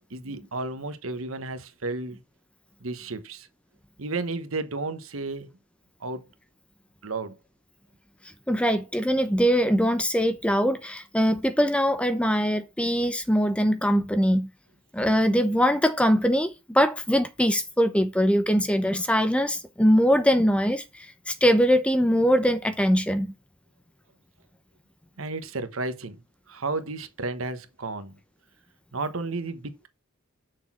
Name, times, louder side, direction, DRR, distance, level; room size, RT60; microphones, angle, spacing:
voice 1, 0.1-2.2 2.8-3.5 4.0-5.5 6.0-6.2 7.0-7.4 25.2-26.2 26.5-28.1 28.9-29.9, right 3 dB, 75° right, 1.2 m, -32 dB
voice 2, 8.5-14.5 14.9-20.8 21.3-23.3, equal, 5° left, 0.8 m, -22 dB
6.6 x 6.2 x 6.0 m
head